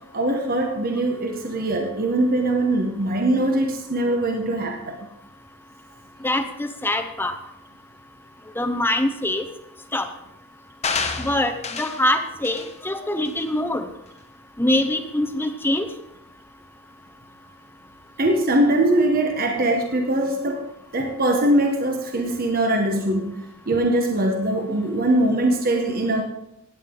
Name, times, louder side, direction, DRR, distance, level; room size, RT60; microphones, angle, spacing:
voice 1, 0.1-5.0 18.2-20.6 20.9-23.3 23.7-26.2, right 1 dB, 45° right, 2 dB, 1.2 m, -22 dB
voice 2, 6.2-7.4 8.6-9.4 9.9-10.1 11.2-13.9 14.6-15.9, left 1 dB, 10° left, 7 dB, 0.7 m, -24 dB
sound 1, 10.8-12.1 12.4-12.7 13.3-13.4, left 5 dB, 30° left, 1.0 m, -28 dB
16.5 x 9.2 x 3.8 m, 0.84 s
head